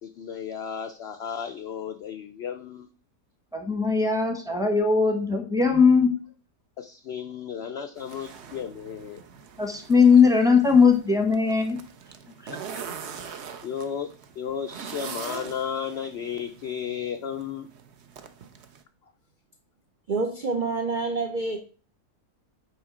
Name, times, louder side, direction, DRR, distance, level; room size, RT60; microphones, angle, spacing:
voice 1, 0.0-2.9 6.8-9.2 12.5-12.6 13.6-17.7, left 8 dB, 75° left, 0.5 m, -34 dB
voice 2, 3.5-6.1 9.6-11.8 12.4-12.5, left 5 dB, 5° right, 0.7 m, -19 dB
sound 1, 8.0-18.8, right 6 dB, 55° right, 0.8 m, -43 dB
voice 3, 20.1-21.6, right 3 dB, 70° right, 0.4 m, -27 dB
8.7 x 3.1 x 4.8 m
omnidirectional pair, 1.7 m